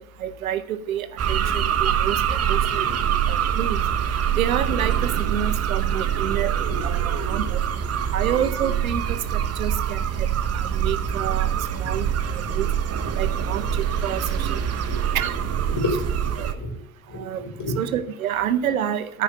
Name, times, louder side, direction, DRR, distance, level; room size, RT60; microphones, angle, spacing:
voice 1, 0.2-2.9 3.3-3.8 4.4-6.5 6.8-7.6 8.1-10.3 10.5-11.5 11.7-12.7 13.1-14.6 15.1-15.4 16.4-16.5 17.1-17.4 17.8-19.2, right 10 dB, 75° right, 13 dB, 0.9 m, -28 dB
sound 1, 1.2-16.5, right 9 dB, 35° right, 1.1 m, -24 dB
voice 2, 7.0-7.4 8.0-8.4 14.5-14.6 14.9-15.0 15.8-16.8 17.1-17.8, left 2 dB, 45° left, 0 dB, 3.9 m, -31 dB
9.7 x 5.3 x 7.8 m, 0.71 s
figure-of-eight pair, 55°, 42 cm